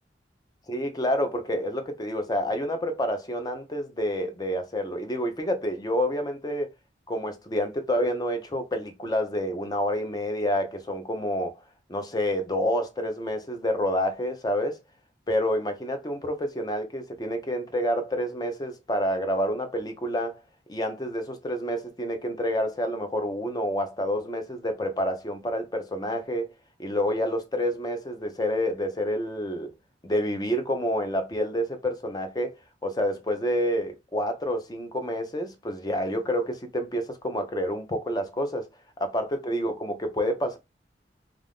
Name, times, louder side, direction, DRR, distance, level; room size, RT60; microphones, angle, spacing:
voice 1, 0.7-6.7 7.1-11.5 11.9-14.8 15.3-20.4 20.7-26.5 26.8-29.7 30.0-32.6 32.8-38.7 39.0-40.6, equal, 20° left, 0.5 m, -28 dB
2.5 x 2.3 x 3.4 m
head